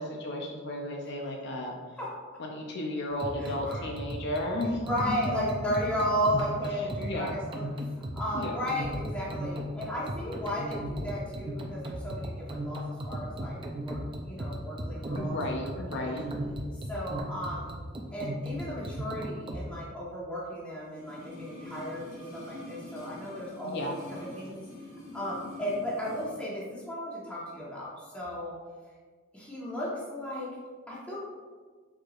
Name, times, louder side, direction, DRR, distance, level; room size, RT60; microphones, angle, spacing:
voice 1, 0.0-1.8 2.4-5.3 6.8-7.3 8.3-8.5 15.1-16.2 23.6-24.0, left 1 dB, 55° left, 0 dB, 0.5 m, -34 dB
sound 1, 3.1-19.7, right 1 dB, 25° right, 0.4 m, -36 dB
voice 2, 3.4-3.8 4.8-7.7 7.9-13.6 13.8-15.4 15.9-16.1 16.9-17.8 18.1-24.6 25.1-28.5 29.3-30.5 30.9-31.2, equal, 5° left, -7 dB, 1.2 m, -34 dB
sound 2, 20.9-26.4 26.6-26.7, left 1 dB, 80° left, 1.5 m, -45 dB
4.7 x 4.5 x 2.4 m, 1.5 s
head